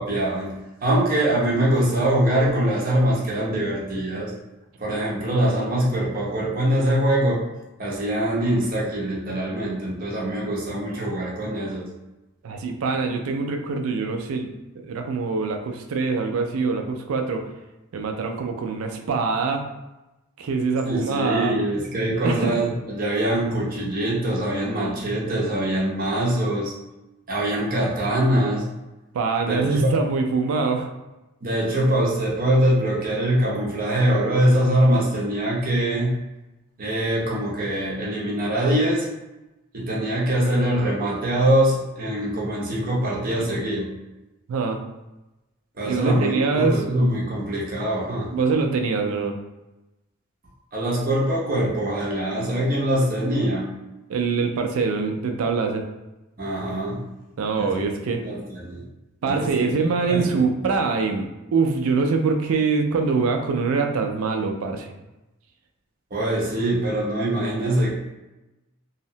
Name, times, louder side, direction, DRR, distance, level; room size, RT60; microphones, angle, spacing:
voice 1, 0.0-4.3 4.8-7.5 7.8-11.9 20.9-26.7 27.3-28.7 29.5-29.9 31.4-36.1 36.8-39.1 39.7-43.9 45.8-48.3 50.7-53.7 56.4-57.1 57.6-57.8 58.2-58.8 59.3-60.3 66.1-68.0, right 1 dB, 40° right, -4 dB, 0.6 m, -23 dB
voice 2, 12.4-14.5 14.8-17.4 17.9-19.6 20.4-21.5 22.2-22.5 29.1-30.9 43.4-43.5 44.5-44.8 45.9-47.1 48.3-49.4 54.1-55.9 57.4-58.2 59.2-64.9, right 4 dB, 80° right, 4 dB, 0.4 m, -24 dB
2.7 x 2.0 x 2.7 m, 1.0 s
head